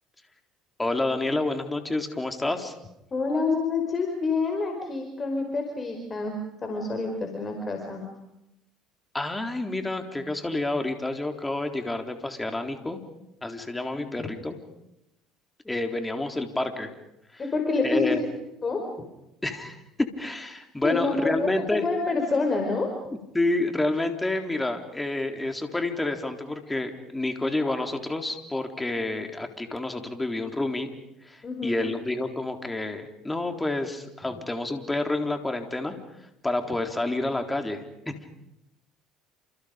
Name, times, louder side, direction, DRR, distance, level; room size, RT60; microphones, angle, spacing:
voice 1, 0.8-2.7 9.1-13.0 13.4-14.6 15.7-16.9 17.3-17.4 17.8-18.2 19.4-21.8 23.3-30.9 31.2-36.0 36.4-38.1, left 2 dB, 10° left, 5 dB, 3.8 m, -29 dB
voice 2, 3.1-8.0 13.9-14.3 17.4-18.1 18.6-18.9 20.8-22.9 31.4-31.9 34.3-34.4, left 3 dB, 30° left, 3 dB, 5.1 m, -28 dB
29.5 x 28.5 x 5.2 m, 0.86 s
supercardioid pair, 80°, 0 cm